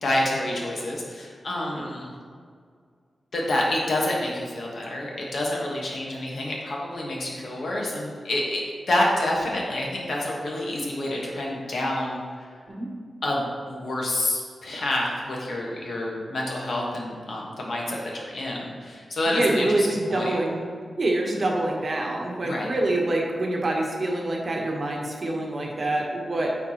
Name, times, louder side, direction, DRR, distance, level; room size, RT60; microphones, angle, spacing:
voice 1, 0.0-2.1 3.3-12.5 13.2-20.4 22.4-22.7, left 1 dB, 65° left, -2 dB, 1.3 m, -28 dB
voice 2, 19.3-20.7 21.0-26.5, right 2 dB, 40° right, -1 dB, 1.0 m, -26 dB
8.8 x 4.7 x 2.9 m, 2.1 s
wide cardioid pair, 145°, 0 cm